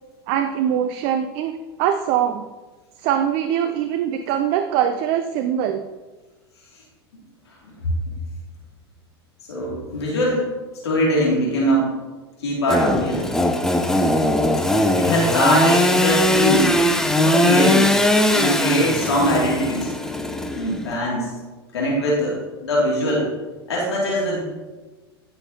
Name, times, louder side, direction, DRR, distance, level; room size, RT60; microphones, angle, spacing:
voice 1, 0.3-2.5 3.0-5.8, right 9 dB, 50° right, 9 dB, 0.5 m, -22 dB
voice 2, 9.5-10.5 10.8-11.9 12.4-13.3 15.0-16.8 17.2-17.9 18.3-19.9 20.5-21.4 21.7-23.3 23.7-24.4, equal, 80° left, -4 dB, 2.5 m, -21 dB
Engine / Sawing, 12.7-20.9, left 1 dB, 5° left, 0.7 m, -20 dB
14.0 x 5.8 x 2.8 m, 1.2 s
hypercardioid pair, 95°, 14 cm